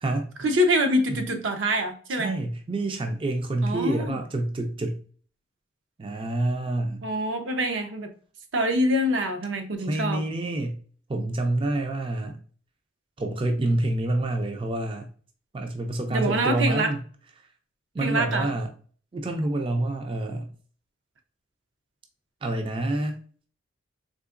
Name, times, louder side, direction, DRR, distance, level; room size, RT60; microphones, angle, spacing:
voice 1, 0.4-2.3 3.6-4.2 7.0-8.1 8.5-10.2 16.1-16.9 18.0-18.5, equal, 75° right, 5 dB, 0.6 m, -25 dB
voice 2, 2.1-5.0 6.0-7.1 9.8-10.8 11.1-12.4 13.2-15.1 15.5-17.0 17.9-18.7 19.1-20.5 22.4-23.2, right 2 dB, 30° right, 4 dB, 0.4 m, -27 dB
3.8 x 2.8 x 2.4 m, 0.43 s
head